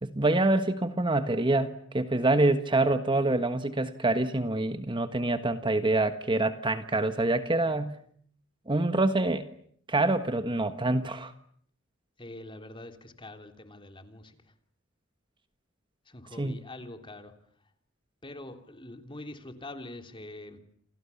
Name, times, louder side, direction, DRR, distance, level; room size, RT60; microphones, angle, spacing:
voice 1, 0.0-7.9 8.7-9.5 9.9-11.3 16.4-16.6, right 2 dB, 25° right, 10 dB, 1.4 m, -26 dB
voice 2, 12.2-14.4 16.0-17.3 18.2-20.6, left 1 dB, 25° left, 6 dB, 3.3 m, -44 dB
29.5 x 27.5 x 7.1 m, 0.63 s
head